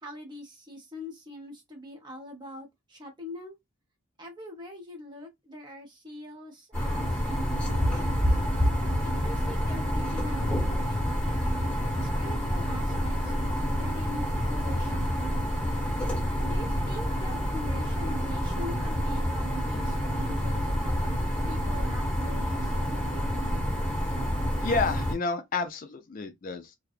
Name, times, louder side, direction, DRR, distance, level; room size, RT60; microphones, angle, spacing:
voice 1, 0.0-3.6 4.2-8.3 9.0-11.6 11.9-15.4 16.4-21.1 21.5-23.2, left 1 dB, 20° right, 0.8 m, -43 dB
sound 1, 6.7-25.1, equal, 5° left, 1.0 m, -28 dB
voice 2, 24.6-26.8, left 4 dB, 40° left, 0.4 m, -30 dB
2.6 x 2.2 x 2.4 m
head